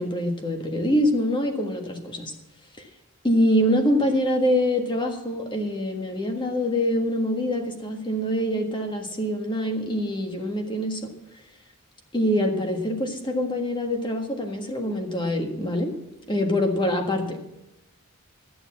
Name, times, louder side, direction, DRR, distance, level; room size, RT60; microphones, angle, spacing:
voice 1, 0.0-2.3 2.8-2.9 3.2-11.0 12.1-15.9 16.3-17.4, left 1 dB, 20° left, 3 dB, 1.6 m, -25 dB
13.5 x 7.0 x 7.3 m, 0.90 s
head